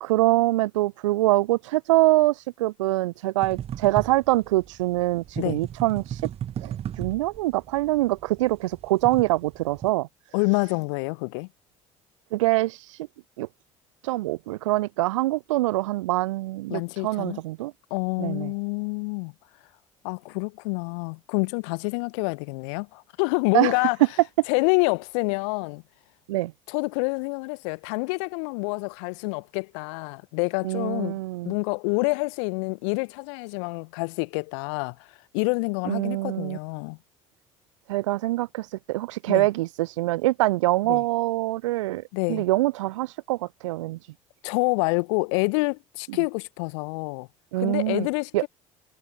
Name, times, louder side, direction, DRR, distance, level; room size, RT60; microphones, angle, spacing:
voice 1, 0.0-6.3 6.6-10.1 12.3-13.1 13.4-13.5 14.0-17.7 18.2-18.5 23.5-23.8 26.3-26.5 30.6-31.5 35.9-36.6 37.9-44.1 47.5-48.1 48.3-48.4, right 18 dB, 65° right, 0.7 m, -24 dB
sound 1, 3.4-9.9, right 10 dB, 35° right, 1.0 m, -36 dB
voice 2, 10.3-11.5 16.7-17.4 17.9-19.3 20.0-24.0 24.5-25.8 26.7-31.2 31.4-35.1 35.3-37.0 39.3-39.5 40.9-41.0 42.1-42.4 44.4-47.3 47.6-48.5, left 33 dB, 60° left, 1.3 m, -27 dB
figure-of-eight pair, 60°, 17 cm